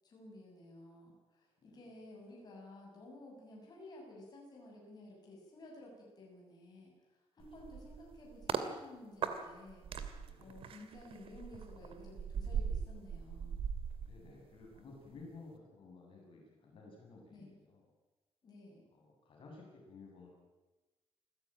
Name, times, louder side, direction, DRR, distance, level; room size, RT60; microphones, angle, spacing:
voice 1, 0.0-9.9 10.4-13.6 17.3-17.5 18.4-18.8, left 1 dB, 40° left, -2 dB, 7.8 m, -54 dB
sound 1, 7.4-8.7 9.2-14.8 15.1-15.4, right 7 dB, 65° right, 2.5 m, -40 dB
voice 2, 14.0-17.9 18.9-20.3, left 3 dB, 55° left, -1 dB, 7.8 m, -55 dB
27.5 x 16.0 x 9.1 m, 1.1 s
cardioid pair, 140°, 10 cm